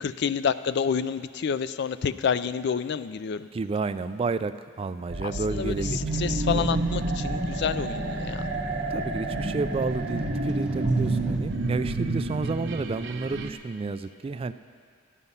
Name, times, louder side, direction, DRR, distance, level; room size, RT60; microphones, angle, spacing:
voice 1, 0.0-3.5 5.5-8.5, left 7 dB, 60° left, 14 dB, 0.4 m, -28 dB
voice 2, 3.5-6.7 8.9-14.5, right 4 dB, 30° right, 12 dB, 0.3 m, -31 dB
sound 1, 5.1-13.5, right 3 dB, 65° right, 0.8 m, -30 dB
sound 2, 5.8-11.4, equal, 5° right, 1.4 m, -34 dB
13.5 x 10.0 x 5.5 m, 2.1 s
head